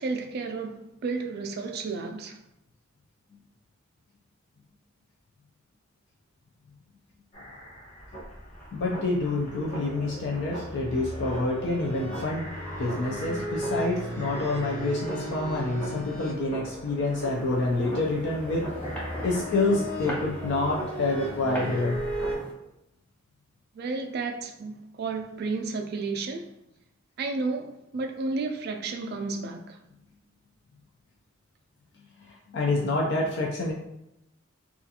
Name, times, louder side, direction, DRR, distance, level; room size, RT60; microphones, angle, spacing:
voice 1, 0.0-2.4 23.7-26.5 27.2-29.8, right 3 dB, 50° right, 0.3 m, -32 dB
sound 1, 7.3-22.4, right 1 dB, 35° left, 1.3 m, -36 dB
voice 2, 8.7-12.5 12.8-18.7 19.2-22.0 32.5-33.7, left 2 dB, 60° left, 0.4 m, -27 dB
sound 2, 17.2-22.5, right 1 dB, 5° left, 0.5 m, -40 dB
2.4 x 2.3 x 2.7 m
head